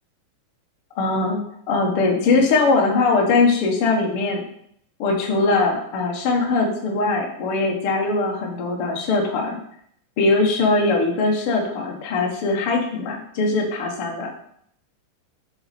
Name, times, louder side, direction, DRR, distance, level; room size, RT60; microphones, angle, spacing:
voice 1, 1.0-1.4 1.7-4.4 5.0-9.6 10.2-14.3, left 3 dB, 55° left, 0 dB, 1.6 m, -21 dB
6.5 x 6.2 x 4.2 m, 0.68 s
omnidirectional pair, 4.0 m